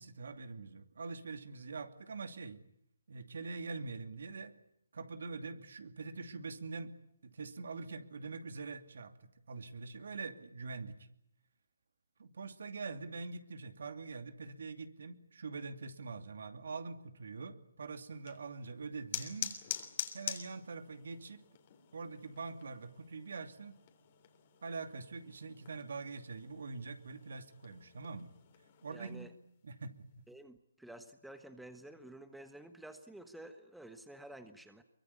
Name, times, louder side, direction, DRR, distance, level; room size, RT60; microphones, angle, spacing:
voice 1, 0.0-2.6 3.1-4.5 4.9-7.0 7.2-11.0 12.2-19.5 20.1-21.4 21.9-23.7 24.6-28.3 28.8-29.3 29.6-30.2, right 4 dB, 70° right, 9 dB, 2.7 m, -44 dB
sound 1, 18.1-29.2, left 10 dB, 35° left, 3.4 m, -47 dB
voice 2, 28.9-29.3 30.3-34.8, right 1 dB, ahead, 8 dB, 1.3 m, -51 dB
23.5 x 22.0 x 8.4 m, 0.75 s
hypercardioid pair, 155°, 0 cm